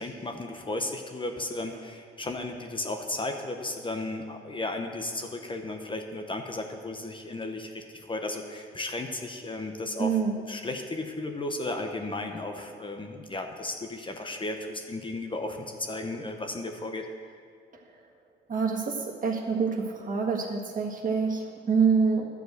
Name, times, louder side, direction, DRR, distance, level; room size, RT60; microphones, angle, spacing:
voice 1, 0.0-10.2 10.5-17.1, left 2 dB, 25° left, 4 dB, 0.9 m, -34 dB
voice 2, 10.0-10.4 18.5-19.0 19.2-22.3, right 5 dB, 40° right, 0 dB, 1.6 m, -26 dB
11.5 x 4.7 x 8.0 m, 2.1 s
cardioid pair, 90°, 20 cm